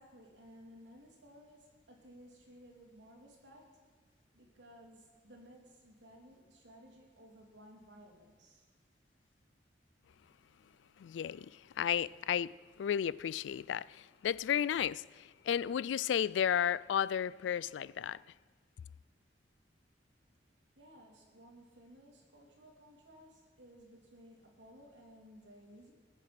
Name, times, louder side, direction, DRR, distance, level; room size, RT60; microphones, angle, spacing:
voice 1, 0.0-3.7 4.3-8.6 20.8-25.9, equal, 90° right, 2.9 m, -57 dB
voice 2, 11.0-18.2, left 9 dB, 90° left, 0.3 m, -33 dB
19.5 x 7.5 x 5.9 m
head